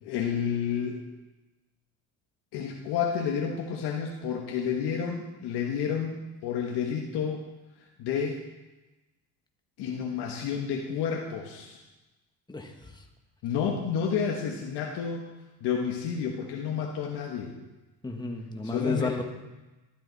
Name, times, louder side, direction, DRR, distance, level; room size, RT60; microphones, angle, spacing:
voice 1, 0.0-1.0 2.5-6.2 6.4-7.4 8.0-8.4 9.8-11.8 13.4-15.2 15.6-17.5 18.6-19.2, left 7 dB, 75° left, 0 dB, 1.4 m, -30 dB
voice 2, 12.5-12.9 18.0-19.2, left 2 dB, 10° left, 3 dB, 1.4 m, -32 dB
12.5 x 12.0 x 4.1 m, 1.1 s
cardioid pair, 115°, 39 cm